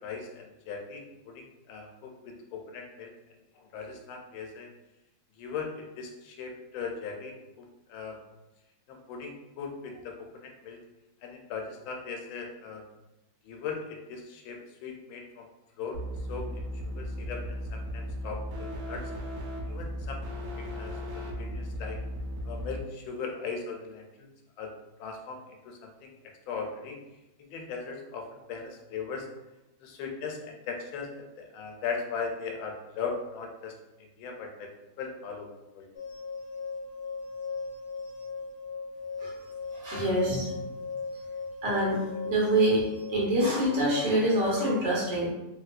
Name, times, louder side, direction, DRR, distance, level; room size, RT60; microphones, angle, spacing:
voice 1, 0.0-3.1 3.5-4.7 5.4-8.2 8.9-10.8 11.2-12.9 13.4-15.5 15.8-16.0 16.3-19.1 19.7-22.0 22.4-24.3 24.6-24.7 25.0-26.1 26.5-27.0 27.4-29.3 29.8-33.8 34.2-34.7 35.0-35.9, left 5 dB, 85° left, 2 dB, 1.4 m, -39 dB
sound 1, 15.9-22.8, equal, 80° right, 1.4 m, -36 dB
sound 2, 35.9-43.4, left 4 dB, 65° left, 1.3 m, -38 dB
voice 2, 39.7-40.6 41.6-42.8 43.1-45.3, right 1 dB, 60° right, -6 dB, 1.6 m, -26 dB
3.2 x 2.8 x 2.4 m, 0.97 s
omnidirectional pair, 2.2 m